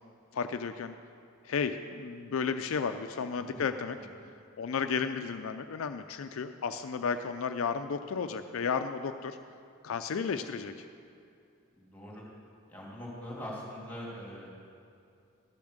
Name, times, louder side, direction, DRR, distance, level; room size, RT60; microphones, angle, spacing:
voice 1, 0.3-0.9 1.4-4.0 4.6-9.4 9.8-10.9, left 5 dB, 70° left, 8 dB, 0.4 m, -33 dB
voice 2, 11.8-12.2 12.7-14.5, equal, 10° left, -5 dB, 2.8 m, -42 dB
12.5 x 7.0 x 6.5 m, 2.5 s
head